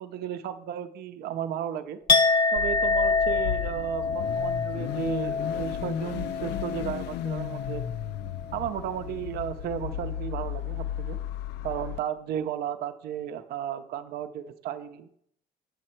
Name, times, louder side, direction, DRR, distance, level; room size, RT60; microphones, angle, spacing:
voice 1, 0.0-2.0 2.5-7.8 8.5-11.2 11.6-15.2, right 9 dB, 70° right, 7 dB, 0.6 m, -34 dB
Chink clink, 2.1-8.0 8.3-8.7, left 4 dB, 25° left, 0.9 m, -27 dB
Car / Idling / Accelerating revving vroom, 2.6-12.0, left 11 dB, 80° left, 0.4 m, -34 dB
9.0 x 6.4 x 4.4 m, 0.69 s
cardioid pair, 110°, 17 cm